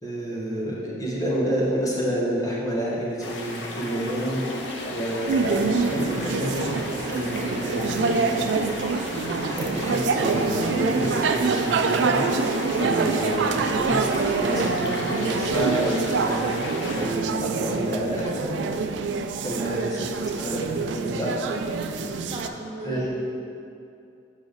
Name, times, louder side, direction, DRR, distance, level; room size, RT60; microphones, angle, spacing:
voice 1, 0.0-4.4 4.9-6.5 6.9-8.5 9.5-12.3 12.8-16.5 16.9-18.6 19.4-20.1 20.4-21.5 22.8-23.1, right 1 dB, 20° left, -5 dB, 1.1 m, -29 dB
sound 1, 3.2-17.1, left 1 dB, 90° left, 0.8 m, -34 dB
sound 2, 5.3-22.5, right 4 dB, 85° right, 0.3 m, -26 dB
voice 2, 19.5-20.1 22.2-23.1, right 1 dB, 25° right, -4 dB, 0.5 m, -37 dB
6.5 x 4.8 x 3.9 m, 2.5 s
head